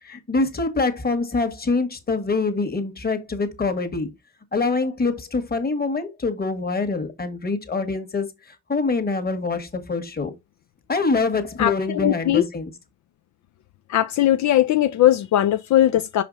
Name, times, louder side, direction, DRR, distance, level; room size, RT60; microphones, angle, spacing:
voice 1, 0.0-4.1 4.5-10.3 10.9-12.7, left 3 dB, 30° left, 1.7 m, -25 dB
voice 2, 11.6-12.4 13.9-16.2, left 13 dB, 70° left, 0.6 m, -19 dB
5.7 x 5.0 x 4.0 m
cardioid pair, 90°, 30 cm